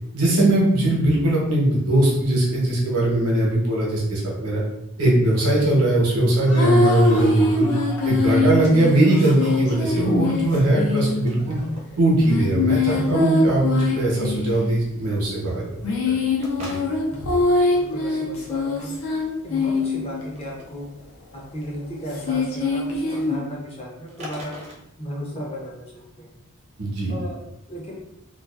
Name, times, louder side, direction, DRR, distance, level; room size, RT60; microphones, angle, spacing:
voice 1, 0.1-4.6 5.0-7.7 8.0-11.6 12.0-15.6 16.0-16.1 16.6-16.8 26.8-27.1, right 1 dB, 90° right, -3 dB, 0.8 m, -20 dB
sound 1, 6.3-11.8, left 1 dB, 45° left, 0.9 m, -41 dB
sound 2, 6.6-11.5 12.2-14.7 15.6-20.2 22.1-23.4, left 3 dB, 70° left, 0.6 m, -23 dB
sound 3, 11.3-11.4 11.6-12.3 12.5-12.6 14.5-14.7 16.4-17.2 19.5-19.9 20.3-20.7 23.0-23.3 24.1-24.8, left 1 dB, 30° right, 0.4 m, -40 dB
voice 2, 17.1-20.9 21.3-24.6 25.0-26.3 27.1-27.4 27.7-28.0, equal, 25° left, -3 dB, 0.5 m, -35 dB
2.4 x 2.3 x 2.3 m, 0.81 s
head